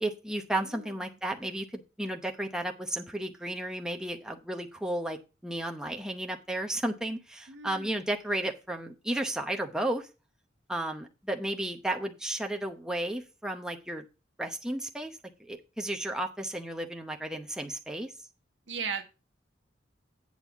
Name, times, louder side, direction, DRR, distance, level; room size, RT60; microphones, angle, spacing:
voice 1, 0.0-5.2 5.4-10.1 10.7-14.0 14.4-18.1, right 1 dB, 5° right, 3 dB, 0.8 m, -33 dB
voice 2, 0.6-1.0 7.5-8.0 18.7-19.0, right 6 dB, 85° right, 4 dB, 1.5 m, -37 dB
8.6 x 4.1 x 7.1 m, 0.31 s
head